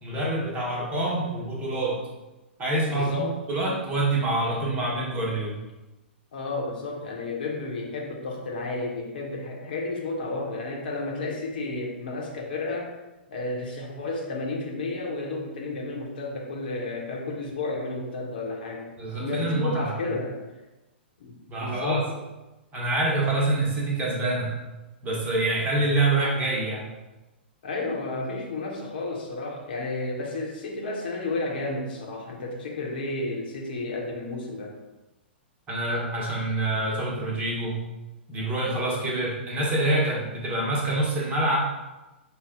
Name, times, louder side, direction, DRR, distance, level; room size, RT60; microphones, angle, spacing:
voice 1, 0.0-2.1 2.6-5.6 19.0-19.9 21.5-22.0 22.7-24.6 25.0-26.9 35.7-37.8 38.3-41.6, right 2 dB, 20° right, -4 dB, 1.1 m, -26 dB
voice 2, 2.9-3.4 6.3-12.9 13.3-18.9 19.2-20.4 21.2-21.3 21.6-22.0 27.6-34.7, left 2 dB, 55° left, -1 dB, 1.0 m, -32 dB
5.3 x 2.3 x 3.6 m, 1.1 s
figure-of-eight pair, 110°, 6 cm